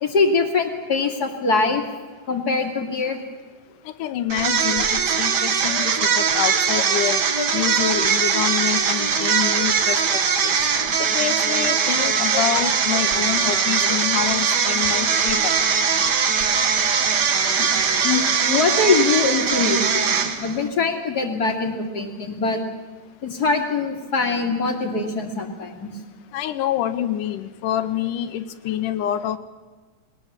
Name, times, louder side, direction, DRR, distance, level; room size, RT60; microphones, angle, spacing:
voice 1, 0.0-1.8 2.3-3.2 6.7-6.8 7.3-7.5 11.5-11.6 12.3-12.4 17.6-17.7 18.0-22.6 23.2-25.9, left 4 dB, 35° left, 3 dB, 2.0 m, -23 dB
voice 2, 4.0-7.2 7.5-10.0 10.4-10.7 11.0-15.5 26.3-29.4, left 11 dB, 75° left, 11 dB, 2.2 m, -27 dB
sound 1, 4.3-20.6, right 6 dB, 80° right, 0.9 m, -21 dB
21.0 x 19.0 x 7.3 m, 1.4 s
omnidirectional pair, 4.0 m